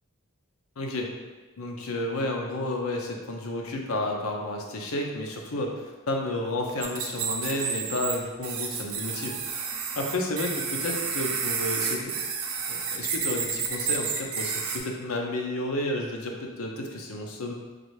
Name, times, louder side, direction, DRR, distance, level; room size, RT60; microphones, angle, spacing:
voice 1, 0.8-1.1 1.6-9.7 10.0-12.2 12.7-17.5, left 1 dB, 75° left, 1 dB, 0.7 m, -31 dB
sound 1, 6.8-8.2 8.4-14.8, right 6 dB, 75° right, 0.5 m, -30 dB
3.9 x 3.2 x 3.2 m, 1.2 s
head